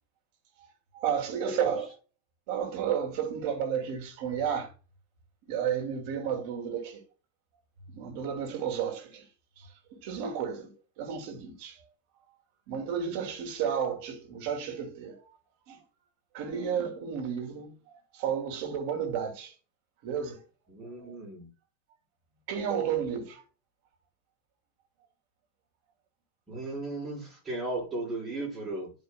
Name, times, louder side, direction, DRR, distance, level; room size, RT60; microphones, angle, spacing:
voice 1, 0.9-2.0 2.5-4.7 5.5-7.0 8.0-9.2 9.9-11.8 12.7-15.2 15.7-15.8 16.3-17.7 18.1-19.5 20.0-20.4 21.0-21.1 22.5-23.4, right 8 dB, 45° right, 2.5 m, -32 dB
voice 2, 20.7-21.5 26.5-28.9, right 2 dB, 10° right, 4.4 m, -36 dB
11.0 x 5.2 x 2.2 m
supercardioid pair, 170°, 0 cm